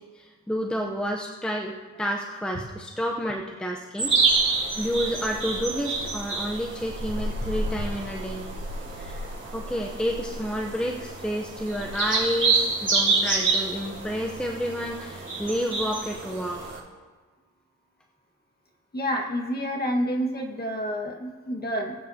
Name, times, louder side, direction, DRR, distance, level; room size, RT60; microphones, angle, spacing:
voice 1, 0.0-4.1 4.4-4.5 4.8-8.4 9.0-9.3 9.5-16.8, equal, 5° left, 0 dB, 0.7 m, -30 dB
sound 1, 4.0-16.8, right 3 dB, 45° right, 4.2 m, -28 dB
voice 2, 18.9-22.0, equal, 30° left, -1 dB, 1.6 m, -28 dB
19.5 x 8.8 x 2.8 m, 1.4 s
wide cardioid pair, 120°, 33 cm